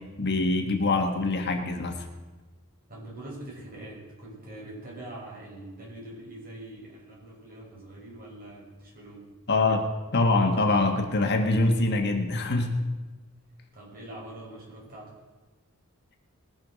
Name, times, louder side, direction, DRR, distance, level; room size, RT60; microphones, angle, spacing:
voice 1, 0.2-2.1 9.5-9.9 10.1-12.7, left 2 dB, 50° left, 4 dB, 1.5 m, -24 dB
voice 2, 2.9-9.2 13.7-15.1, right 1 dB, 45° right, -5 dB, 6.0 m, -43 dB
20.0 x 7.1 x 6.2 m, 1.3 s
head